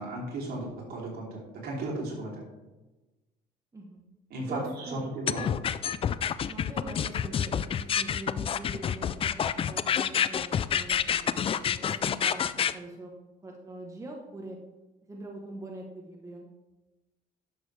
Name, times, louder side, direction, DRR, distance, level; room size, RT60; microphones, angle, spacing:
voice 1, 0.0-2.4 4.3-5.7, right 2 dB, 65° right, -3 dB, 3.2 m, -35 dB
voice 2, 4.5-5.5 6.5-9.3 9.7-13.1 13.4-14.6 15.1-16.5, right 1 dB, 20° right, 0 dB, 1.1 m, -42 dB
sound 1, 5.3-12.7, left 8 dB, 35° left, 0.3 m, -28 dB
11.5 x 6.3 x 3.4 m, 1.1 s
cardioid pair, 110°, 17 cm